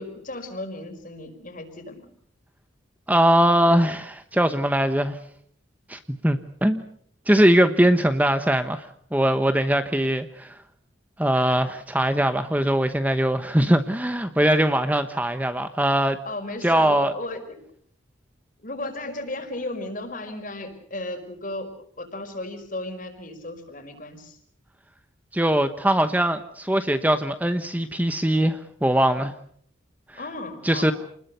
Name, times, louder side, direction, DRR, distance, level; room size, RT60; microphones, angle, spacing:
voice 1, 0.0-2.1 16.2-17.6 18.6-24.4 30.1-30.9, left 2 dB, 45° left, 7 dB, 5.0 m, -35 dB
voice 2, 3.1-5.2 5.9-6.8 7.3-10.6 11.2-16.2 16.6-17.1 25.3-29.3 30.6-30.9, right 1 dB, 10° right, 9 dB, 1.0 m, -21 dB
29.5 x 20.5 x 6.8 m, 0.64 s
head